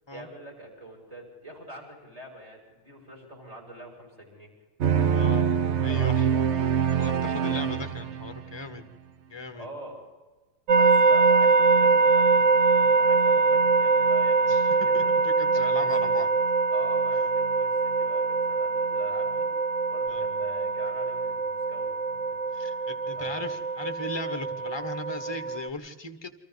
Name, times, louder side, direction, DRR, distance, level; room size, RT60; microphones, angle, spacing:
voice 1, 0.1-4.5 5.0-5.3 5.8-6.4 7.5-7.7 9.5-10.0 10.7-15.1 15.5-16.1 16.7-19.4 19.9-22.4 23.1-23.4, right 1 dB, 15° right, -1 dB, 6.7 m, -45 dB
sound 1, 4.8-8.6, right 7 dB, 65° right, 0.6 m, -24 dB
voice 2, 5.0-5.4 5.8-6.3 7.0-8.9 9.3-9.7 14.5-16.3 20.1-20.3 22.5-26.3, left 2 dB, 15° left, 8 dB, 1.3 m, -37 dB
sound 2, 10.7-25.7, right 4 dB, 50° right, 1.0 m, -23 dB
29.0 x 25.0 x 4.2 m, 1.3 s
omnidirectional pair, 2.2 m